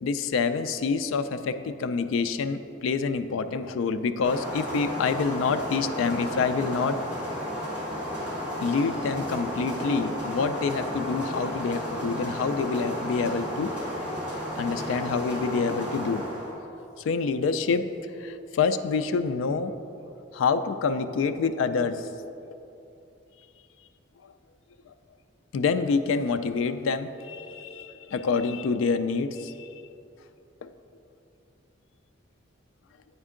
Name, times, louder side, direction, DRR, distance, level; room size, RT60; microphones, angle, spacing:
voice 1, 0.0-7.0 8.6-13.7 14.6-16.2 17.0-17.9 18.2-19.7 20.3-22.1 24.9-25.0 25.5-29.8 30.6-30.7, left 5 dB, 80° left, 10 dB, 0.3 m, -27 dB
sound 1, 4.2-16.5, equal, 5° right, 1.5 m, -33 dB
9.1 x 4.3 x 3.7 m, 2.7 s
head